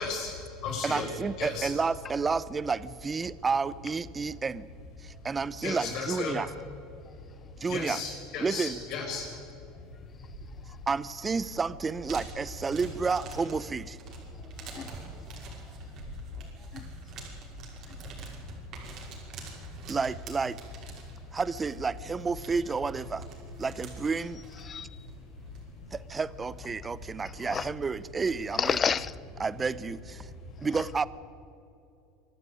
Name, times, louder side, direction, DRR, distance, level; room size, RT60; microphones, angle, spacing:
voice 1, 0.0-1.1 1.4-1.7 5.6-6.4 7.7-9.3 19.6-19.7 24.8-25.9 26.9-27.0 30.2-30.7, left 5 dB, 55° left, 5.7 m, -36 dB
voice 2, 0.8-4.7 5.0-6.5 7.6-8.0 8.4-8.8 10.9-14.0 19.9-20.6 21.3-23.3 23.6-24.4 25.9-28.8 29.4-30.3 30.6-31.1, right 4 dB, 20° right, 0.7 m, -30 dB
Plastic Bag Foley, 9.8-28.9, right 2 dB, 50° right, 5.7 m, -47 dB
voice 3, 14.4-15.7 16.7-16.9 24.6-25.1 27.2-27.7 28.5-29.1 30.6-30.8, left 7 dB, 30° left, 0.6 m, -33 dB
24.5 x 12.0 x 9.4 m
supercardioid pair, 110°, 0 cm